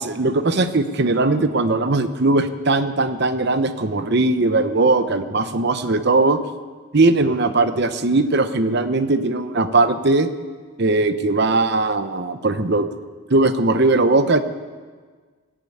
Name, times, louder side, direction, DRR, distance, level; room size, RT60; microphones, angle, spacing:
voice 1, 0.0-6.4 6.9-10.3 10.8-12.9 13.3-14.5, right 2 dB, 50° right, 10 dB, 0.8 m, -19 dB
18.5 x 7.5 x 8.5 m, 1.5 s
head